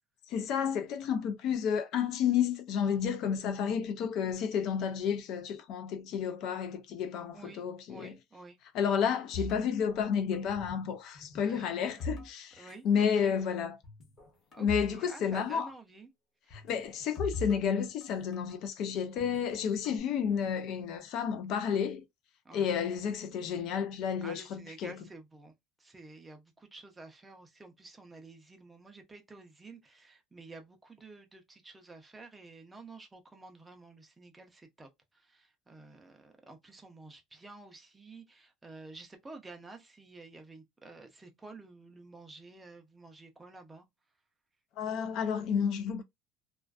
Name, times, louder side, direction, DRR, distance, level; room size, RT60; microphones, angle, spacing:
voice 1, 0.3-8.2 8.7-13.8 14.6-15.7 16.5-22.0 22.5-25.0 44.8-46.0, left 7 dB, 50° left, 0.4 m, -31 dB
voice 2, 7.9-8.6 11.4-11.9 12.6-13.3 14.5-16.1 16.4-16.5 22.4-22.7 24.2-25.5 25.8-43.9, right 3 dB, 10° right, 0.5 m, -51 dB
sound 1, 9.3-10.9 11.1-12.7 13.0-13.2 13.8-15.0 15.2-15.3 16.5-18.6 19.2-20.0, left 1 dB, 30° left, 0.9 m, -42 dB
2.4 x 2.3 x 2.3 m
cardioid pair, 165°, 0 cm